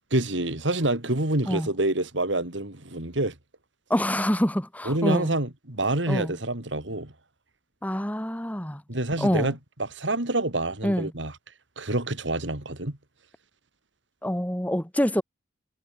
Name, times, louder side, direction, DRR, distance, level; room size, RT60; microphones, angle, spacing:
voice 1, 0.1-3.3 4.9-7.1 8.9-11.3 11.8-13.0, right 2 dB, 75° right, 3.4 m, -27 dB
voice 2, 3.9-5.3 6.1-6.3 7.8-8.8 9.2-9.5 10.8-11.1 14.2-15.2, equal, 10° left, 3.3 m, -26 dB
head